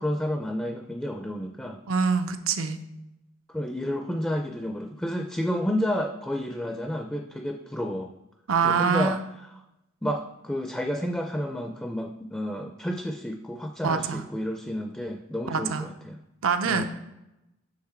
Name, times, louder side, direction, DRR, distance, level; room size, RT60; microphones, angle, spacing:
voice 1, 0.0-1.8 3.5-8.1 8.6-9.2 10.0-16.2 16.6-16.9, equal, 5° left, 4 dB, 0.4 m, -30 dB
voice 2, 1.9-2.8 8.5-9.2 13.8-14.3 15.5-15.9 16.4-16.9, right 5 dB, 90° right, 8 dB, 0.6 m, -25 dB
6.2 x 5.8 x 4.3 m, 0.92 s
head